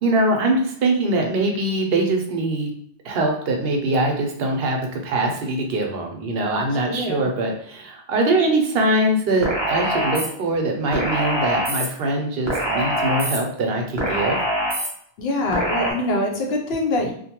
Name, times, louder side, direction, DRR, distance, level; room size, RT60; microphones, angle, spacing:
voice 1, 0.0-2.7 3.0-14.4, right 2 dB, 65° right, 2 dB, 0.8 m, -22 dB
voice 2, 6.9-7.2 15.2-17.1, left 2 dB, 70° left, 1 dB, 0.8 m, -24 dB
sound 1, 9.4-10.3 10.9-11.9 12.5-13.4 14.0-14.9 15.5-15.9, right 1 dB, 25° right, 0.8 m, -23 dB
2.5 x 2.2 x 2.8 m, 0.65 s
omnidirectional pair, 1.1 m